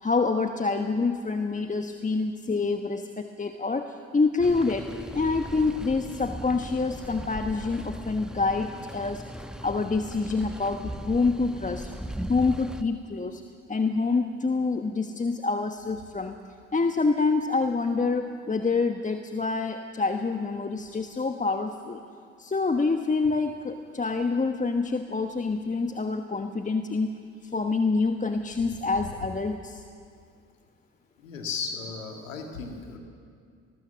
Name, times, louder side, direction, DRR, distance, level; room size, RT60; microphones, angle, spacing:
voice 1, 0.0-4.9 5.1-9.2 9.6-11.9 12.3-13.4 13.7-16.4 16.7-22.0 22.4-27.1 27.5-29.8, left 4 dB, 20° left, 6 dB, 1.2 m, -27 dB
sound 1, 4.4-12.8, equal, ahead, 1.1 m, -38 dB
voice 2, 31.2-33.0, left 5 dB, 85° left, 3 dB, 2.3 m, -35 dB
21.5 x 19.0 x 7.1 m, 2.3 s
hypercardioid pair, 50°, 38 cm